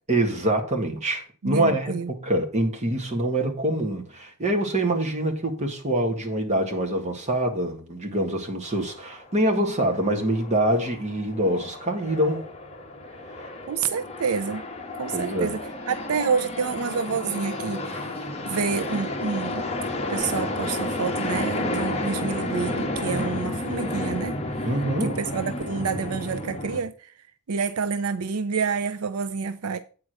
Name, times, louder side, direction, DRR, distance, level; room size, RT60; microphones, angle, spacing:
voice 1, 0.1-12.4 15.1-15.6 24.6-25.2, right 1 dB, 30° right, 1.8 m, -25 dB
voice 2, 1.4-2.1 2.6-2.7 13.7-14.6 15.0-15.6 15.9-18.1 18.5-19.6 20.1-24.7 25.0-27.1 27.5-29.8, right 5 dB, 80° right, 0.5 m, -28 dB
sound 1, 8.7-9.6 9.9-26.8, left 1 dB, 30° left, 1.3 m, -31 dB
8.6 x 4.8 x 6.1 m
head